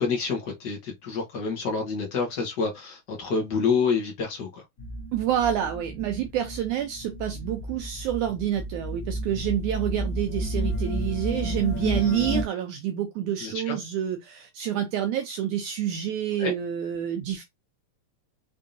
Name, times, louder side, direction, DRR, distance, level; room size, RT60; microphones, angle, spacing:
voice 1, 0.0-4.6 13.4-13.8 16.4-16.5, left 5 dB, 65° left, 1.0 m, -28 dB
sound 1, 4.8-12.4, equal, 45° left, 1.9 m, -32 dB
voice 2, 5.1-17.4, right 10 dB, 80° right, 1.8 m, -28 dB
5.5 x 3.5 x 2.6 m
omnidirectional pair, 4.0 m